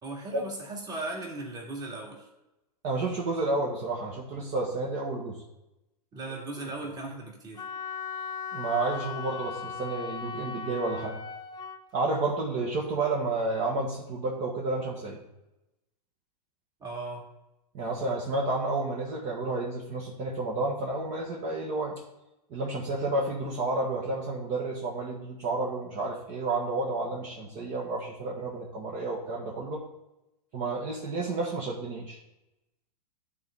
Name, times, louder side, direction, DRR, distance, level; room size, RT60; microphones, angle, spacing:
voice 1, 0.0-2.3 6.1-7.7 16.8-17.3, right 2 dB, 20° right, -1 dB, 2.1 m, -37 dB
voice 2, 2.8-5.4 8.5-11.2 11.9-15.2 17.7-21.9 22.5-29.8 30.5-32.2, right 2 dB, 40° right, -2 dB, 1.6 m, -31 dB
Wind instrument woodwind instrument, 7.6-11.8, left 6 dB, 20° left, 0.5 m, -37 dB
12.5 x 4.2 x 3.6 m, 0.94 s
hypercardioid pair, 120°, 21 cm